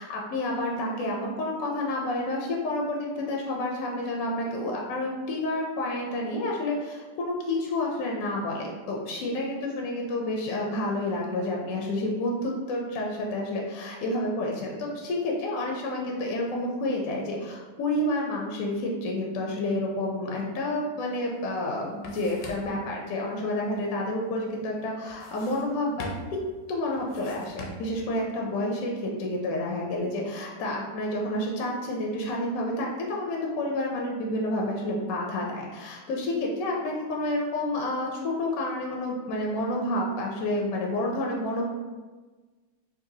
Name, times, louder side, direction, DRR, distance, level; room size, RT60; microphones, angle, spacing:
voice 1, 0.3-26.1 26.7-32.9 33.2-41.6, left 1 dB, 70° left, -1 dB, 0.8 m, -29 dB
sound 1, 21.2-21.3 21.6-22.9 25.1-25.7 26.0-26.5 27.0-28.0, left 1 dB, 85° left, 1.3 m, -42 dB
3.9 x 2.6 x 2.6 m, 1.3 s
omnidirectional pair, 1.9 m